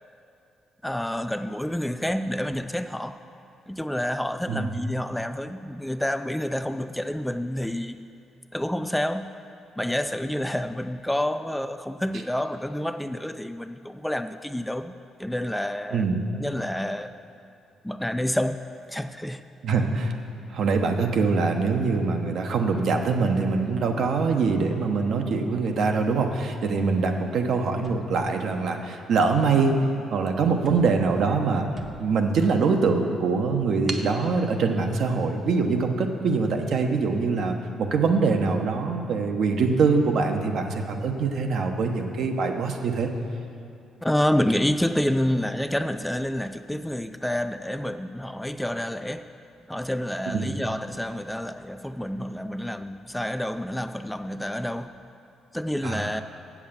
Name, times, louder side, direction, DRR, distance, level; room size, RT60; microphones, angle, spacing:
voice 1, 0.8-3.2 3.7-8.0 8.5-9.3 9.8-14.9 15.2-16.0 16.3-17.2 17.8-18.6 18.9-19.4 44.0-49.3 49.7-55.0 55.5-56.2, left 1 dB, 5° left, 9 dB, 0.3 m, -28 dB
voice 2, 15.9-16.2 19.6-20.2 20.5-29.8 30.1-31.7 32.0-43.1 50.3-50.5 55.8-56.1, right 4 dB, 70° right, 4 dB, 0.9 m, -24 dB
sound 1, 27.8-29.1 29.7-29.9 30.2-30.3 30.6-32.3 32.8-32.9 33.9-34.2, right 3 dB, 40° right, 0.8 m, -41 dB
7.7 x 7.2 x 7.2 m, 2.6 s
cardioid pair, 90°, 0 cm